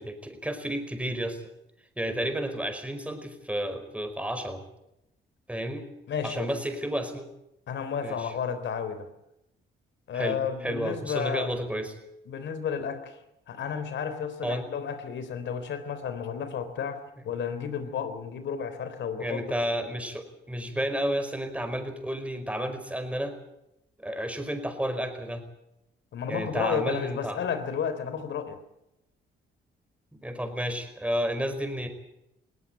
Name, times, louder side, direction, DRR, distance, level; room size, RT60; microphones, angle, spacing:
voice 1, 0.0-1.4 2.0-4.6 5.5-5.8 6.2-7.3 8.0-8.3 10.1-11.9 14.4-14.7 19.2-23.3 24.0-25.4 26.3-27.4 30.2-31.9, equal, 5° right, 7 dB, 5.0 m, -31 dB
voice 2, 6.1-6.5 7.7-9.1 10.1-11.5 12.3-13.2 13.5-17.0 17.2-19.4 19.8-19.9 26.1-28.6, left 7 dB, 70° left, 11 dB, 3.6 m, -32 dB
19.5 x 18.5 x 9.0 m, 0.86 s
cardioid pair, 90°, 20 cm